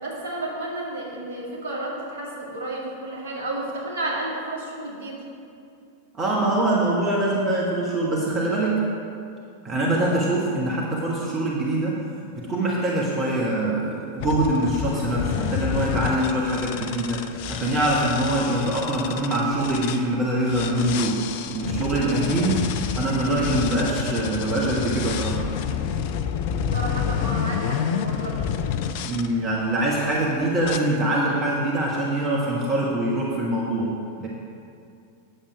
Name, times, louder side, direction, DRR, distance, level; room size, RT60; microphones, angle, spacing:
voice 1, 0.0-5.2 26.7-28.5, right 2 dB, 60° right, -4 dB, 2.2 m, -31 dB
voice 2, 6.1-8.9 9.6-12.0 12.3-17.2 17.5-22.7 22.9-25.4 29.0-33.9 34.2-34.3, right 1 dB, 25° right, -4 dB, 1.3 m, -24 dB
sound 1, 14.2-20.0 20.5-29.3 29.9-30.2 30.6-30.8, left 8 dB, 50° left, 0.4 m, -29 dB
8.9 x 7.4 x 4.9 m, 2.4 s
figure-of-eight pair, 90°, 0 cm